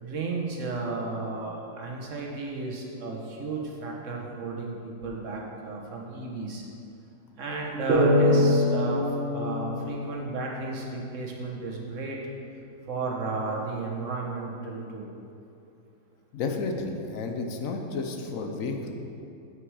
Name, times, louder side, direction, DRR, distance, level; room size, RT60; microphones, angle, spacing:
voice 1, 0.0-6.6 7.4-9.1 9.3-12.2 12.9-15.1, right 3 dB, 65° right, -1 dB, 1.3 m, -33 dB
sound 1, 7.9-11.3, left 1 dB, 45° right, 1.2 m, -25 dB
voice 2, 16.3-18.9, left 3 dB, 70° left, 3 dB, 1.1 m, -31 dB
7.8 x 6.1 x 4.8 m, 2.7 s
omnidirectional pair, 1.5 m